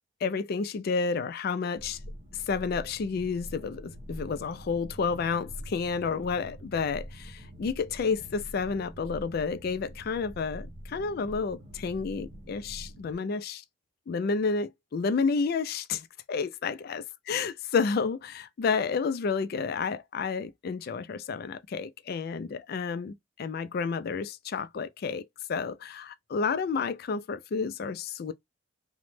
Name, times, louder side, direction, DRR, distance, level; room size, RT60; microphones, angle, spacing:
voice 1, 0.2-2.0 2.3-13.6 14.1-28.3, left 5 dB, 50° left, 0.3 m, -30 dB
sound 1, 1.8-13.2, equal, 35° right, 0.5 m, -45 dB
3.0 x 2.0 x 3.1 m
head